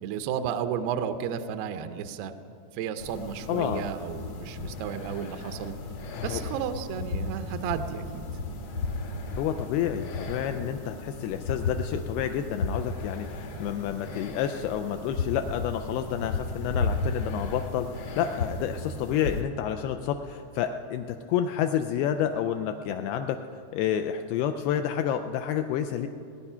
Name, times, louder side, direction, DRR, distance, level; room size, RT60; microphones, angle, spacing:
voice 1, 0.0-2.3 2.7-5.7 6.2-8.3, right 8 dB, 80° right, 9 dB, 2.4 m, -33 dB
sound 1, 3.0-19.4, left 3 dB, 65° left, 1.6 m, -34 dB
voice 2, 3.5-3.9 6.1-6.4 9.3-23.4 23.7-26.1, left 9 dB, 85° left, 7 dB, 2.3 m, -29 dB
19.5 x 10.5 x 5.6 m, 2.5 s
omnidirectional pair, 5.1 m